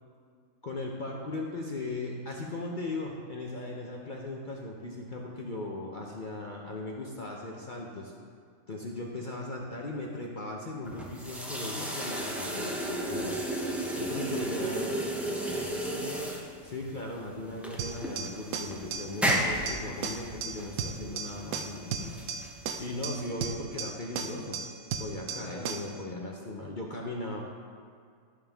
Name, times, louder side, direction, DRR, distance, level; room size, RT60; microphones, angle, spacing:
voice 1, 0.6-8.1 8.7-13.3 13.9-14.9 16.6-22.0 22.8-24.6 25.0-27.4, left 2 dB, 45° left, -1 dB, 0.6 m, -38 dB
sound 1, 10.9-23.3, right 1 dB, ahead, 0.4 m, -34 dB
voice 2, 14.5-15.0 15.6-16.4 21.8-22.4 25.4-25.7, left 1 dB, 70° left, -2 dB, 1.8 m, -45 dB
sound 2, 17.8-26.0, right 6 dB, 75° right, 1.0 m, -36 dB
12.5 x 5.4 x 3.5 m, 2.2 s
omnidirectional pair, 1.6 m